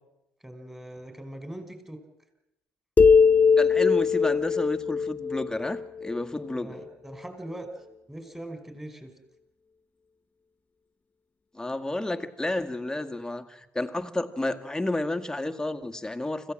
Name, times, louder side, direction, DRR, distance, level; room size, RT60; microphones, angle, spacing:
voice 1, 0.4-2.0 6.6-7.7 8.1-9.1, right 1 dB, 10° right, 7 dB, 5.3 m, -41 dB
sound 1, 3.0-6.5, left 5 dB, 30° left, 0.8 m, -21 dB
voice 2, 3.6-6.7 11.5-16.5, left 2 dB, 10° left, 9 dB, 1.8 m, -31 dB
26.0 x 15.5 x 7.6 m, 0.88 s
hypercardioid pair, 60°, 6 cm